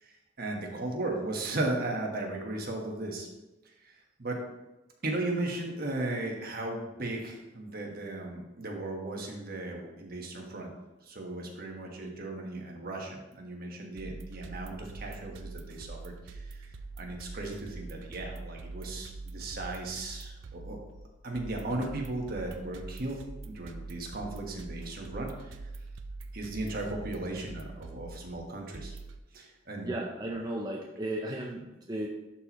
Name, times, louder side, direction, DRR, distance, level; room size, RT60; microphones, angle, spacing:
voice 1, 0.4-3.3 3.8-3.9 4.2-4.4 5.0-10.7 11.0-16.7 17.0-20.8 21.2-23.2 23.4-25.5 26.3-29.0 29.3-29.9, right 2 dB, 50° right, 0 dB, 1.3 m, -36 dB
sound 1, 14.0-29.2, right 3 dB, 80° right, 0.5 m, -44 dB
voice 2, 29.8-32.1, right 1 dB, 20° right, -1 dB, 0.6 m, -35 dB
11.5 x 4.3 x 3.0 m, 1.0 s
head